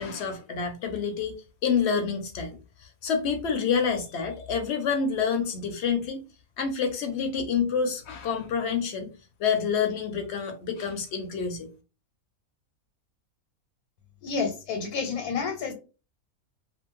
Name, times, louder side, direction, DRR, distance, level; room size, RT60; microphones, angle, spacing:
voice 1, 0.0-1.3 1.6-6.2 6.6-9.1 9.4-11.7, left 6 dB, 65° left, 0.7 m, -28 dB
voice 2, 14.2-15.7, left 5 dB, 85° left, 1.2 m, -29 dB
2.5 x 2.4 x 3.0 m
omnidirectional pair, 1.5 m